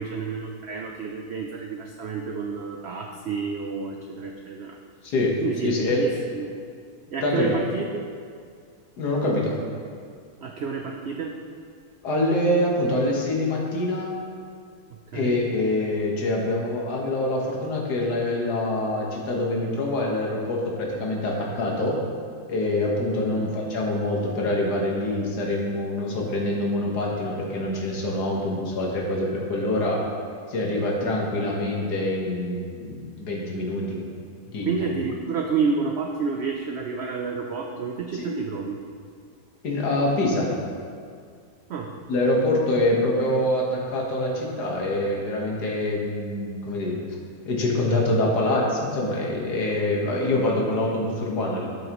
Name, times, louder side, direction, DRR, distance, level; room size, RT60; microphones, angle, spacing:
voice 1, 0.0-4.8 5.4-6.5 7.1-8.0 10.4-11.4 15.1-15.4 23.3-23.5 34.6-38.8 41.7-42.0, right 5 dB, 70° right, 2 dB, 0.6 m, -29 dB
voice 2, 5.0-6.1 7.2-7.6 9.0-9.6 12.0-14.2 15.1-22.0 22.5-30.0 30.5-34.0 34.5-34.9 38.1-38.4 39.6-40.5 42.1-47.0 47.4-51.7, left 1 dB, 80° left, -2 dB, 1.9 m, -25 dB
12.0 x 6.4 x 3.0 m, 2.2 s
omnidirectional pair, 1.7 m